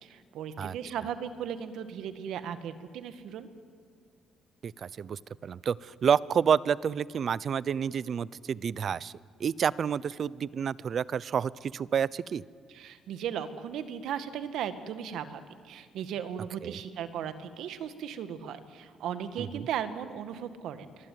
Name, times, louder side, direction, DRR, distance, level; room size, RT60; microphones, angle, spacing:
voice 1, 0.0-3.5 12.7-21.1, right 8 dB, 80° right, 10 dB, 1.9 m, -37 dB
voice 2, 4.6-9.1 9.4-12.4 16.6-16.7 19.4-19.7, right 7 dB, 55° right, 21 dB, 0.7 m, -29 dB
26.0 x 23.5 x 9.4 m, 2.3 s
cardioid pair, 90°, 0 cm